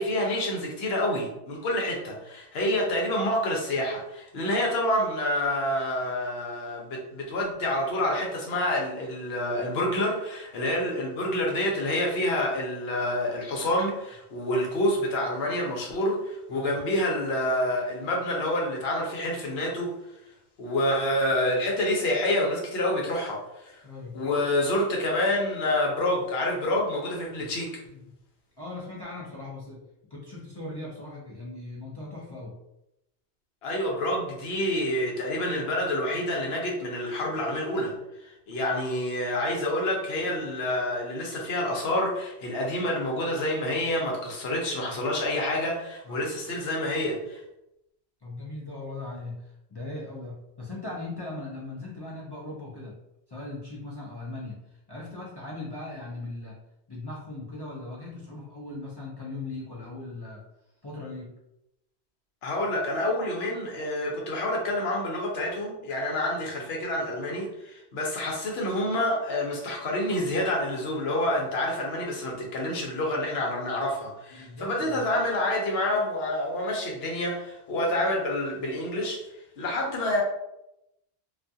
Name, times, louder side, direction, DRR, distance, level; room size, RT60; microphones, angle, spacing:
voice 1, 0.0-19.9 20.6-23.8 24.1-27.7 33.6-37.9 38.2-47.4 62.4-79.2 79.6-80.2, left 1 dB, 70° left, -1 dB, 0.9 m, -28 dB
voice 2, 23.8-24.2 27.4-27.5 27.9-28.1 28.6-29.9 30.1-32.6 46.0-46.3 48.2-53.0 53.3-56.6 56.9-60.4 60.8-61.3 74.3-75.0, left 2 dB, 40° left, -6 dB, 0.4 m, -39 dB
2.4 x 2.3 x 2.6 m, 0.86 s
omnidirectional pair, 1.1 m